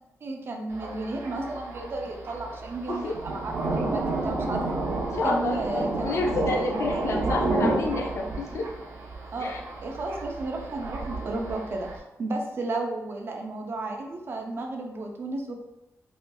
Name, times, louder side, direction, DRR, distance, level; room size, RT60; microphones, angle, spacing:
voice 1, 0.2-4.6 5.2-6.1 6.6-6.7 9.3-11.9 12.2-15.6, right 2 dB, 45° right, 2 dB, 0.5 m, -33 dB
Thunder, 0.7-12.0, right 2 dB, 80° right, 0.8 m, -31 dB
voice 2, 5.0-5.6 6.0-8.7 9.4-9.6, left 3 dB, 60° left, 1 dB, 0.6 m, -29 dB
4.3 x 2.6 x 2.2 m, 0.95 s
wide cardioid pair, 150°, 5 cm